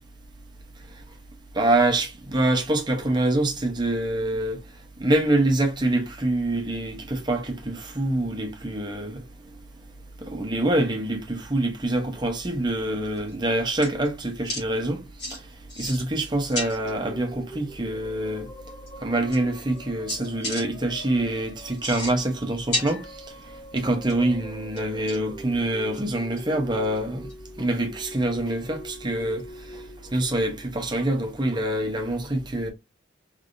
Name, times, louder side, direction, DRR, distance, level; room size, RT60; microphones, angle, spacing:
voice 1, 1.5-4.6 5.0-9.2 10.2-15.0 15.3-15.4 15.8-18.5 19.0-23.2 23.7-27.3 27.6-29.4 29.7-29.8 30.1-32.7, right 1 dB, 25° right, 0.8 m, -25 dB
sound 1, 13.0-13.3 13.8-14.1 14.4-14.6 15.2-15.4 15.7-16.2 16.5-16.9 18.3-18.4 18.9-19.0 19.3-19.8 20.1-20.6 21.7-22.4 22.7-23.4 23.8-24.3 24.8-25.4 25.9-26.0 26.4-26.5 26.8-27.0 27.3-27.4 29.4-29.5, left 1 dB, 60° left, 1.9 m, -33 dB
sound 2, 16.7-31.1, equal, 40° left, 1.4 m, -44 dB
3.4 x 3.3 x 2.5 m
head